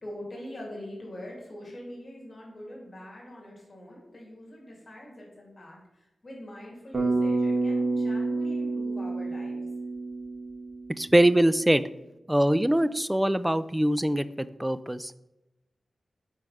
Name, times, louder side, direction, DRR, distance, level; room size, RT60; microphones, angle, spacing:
voice 1, 0.0-9.7, left 1 dB, 45° left, -2 dB, 2.5 m, -43 dB
Bass guitar, 6.9-11.1, right 3 dB, 40° right, 1.6 m, -28 dB
voice 2, 11.0-11.9 12.3-15.1, right 1 dB, 10° right, 14 dB, 0.3 m, -23 dB
4.9 x 4.4 x 5.5 m, 0.95 s
cardioid pair, 65°, 0 cm